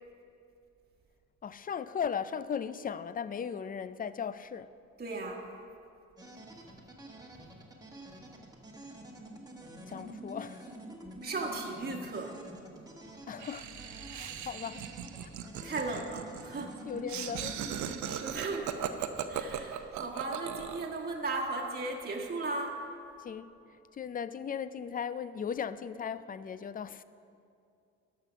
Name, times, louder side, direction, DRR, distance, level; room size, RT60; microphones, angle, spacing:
voice 1, 1.4-4.7 9.9-10.7 13.3-13.7 14.1-14.9 16.9-17.6 23.2-23.5 23.9-27.0, left 7 dB, 30° left, 0.4 m, -37 dB
voice 2, 5.0-5.5 11.2-12.4 15.6-16.9 17.8-18.8 19.3-22.9, right 3 dB, 30° right, 1.4 m, -36 dB
sound 1, 6.2-20.1, right 1 dB, 10° right, 1.4 m, -49 dB
Laughter, 13.4-21.0, right 9 dB, 70° right, 0.7 m, -38 dB
12.0 x 5.7 x 6.1 m
cardioid pair, 90°, 30 cm